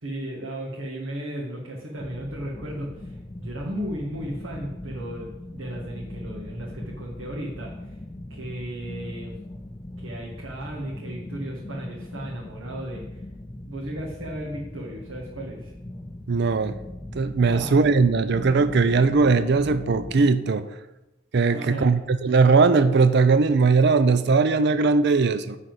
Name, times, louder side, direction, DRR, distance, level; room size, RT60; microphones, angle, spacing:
voice 1, 0.0-8.0 8.3-9.3 10.0-13.0 13.7-15.7 17.4-17.8 21.5-21.9, right 1 dB, 80° right, -3 dB, 1.7 m, -35 dB
sound 1, 2.0-20.3, left 1 dB, 15° left, 0.4 m, -40 dB
voice 2, 16.3-16.8 17.1-20.7 21.3-25.6, right 4 dB, 55° right, 12 dB, 0.5 m, -19 dB
10.5 x 4.2 x 7.7 m, 0.95 s
head